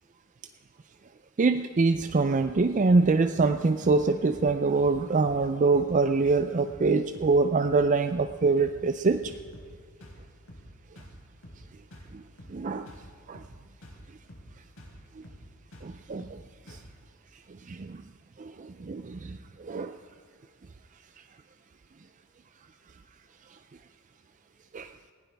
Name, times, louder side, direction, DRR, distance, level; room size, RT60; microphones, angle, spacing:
voice 1, 1.4-9.3 12.1-12.2 12.5-12.9 13.3-13.4 15.8-16.4 16.7-16.8 17.7-18.0 18.4-19.9 24.7-25.1, right 3 dB, 35° right, 9 dB, 0.4 m, -25 dB
sound 1, 1.9-2.1 2.4-2.6 2.9-3.1 3.3-3.6 3.8-4.0 4.3-4.5 4.8-5.0 5.2-5.5 5.7-5.9 6.2-6.4 6.7-6.9 7.1-7.4 7.6-7.8 8.1-8.3 8.6-8.8 9.0-9.7 10.0-10.2 10.5-10.7 11.0-11.2 11.4-11.6 11.9-12.1 12.4-12.6 12.9-13.1 13.3-13.6 13.8-14.0 14.3-14.5 14.8-15.0 15.2-15.5 15.7-15.9 16.2-16.4 16.7-16.9, equal, 85° left, 4.3 m, -48 dB
20.0 x 15.5 x 3.5 m, 2.1 s
head